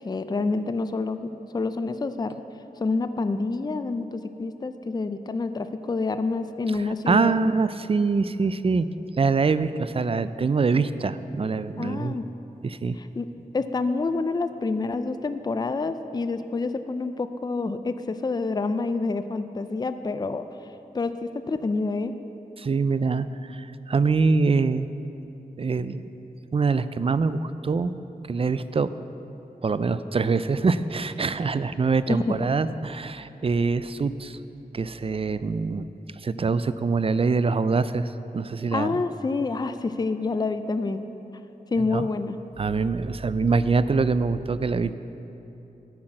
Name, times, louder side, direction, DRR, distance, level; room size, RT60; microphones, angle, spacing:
voice 1, 0.0-2.4 2.8-7.4 11.8-12.2 13.0-13.3 13.5-20.5 20.9-22.1 32.1-32.2 38.7-41.1 41.7-42.4, left 3 dB, 25° left, 10 dB, 0.4 m, -28 dB
voice 2, 7.1-8.9 9.2-12.2 12.6-13.0 22.6-24.9 25.6-26.0 26.5-27.9 28.3-28.9 29.6-34.4 34.7-35.9 36.2-39.0 41.8-42.1 42.6-45.0, right 4 dB, 40° right, 14 dB, 0.4 m, -24 dB
10.0 x 5.9 x 7.6 m, 3.0 s
wide cardioid pair, 65°, 15 cm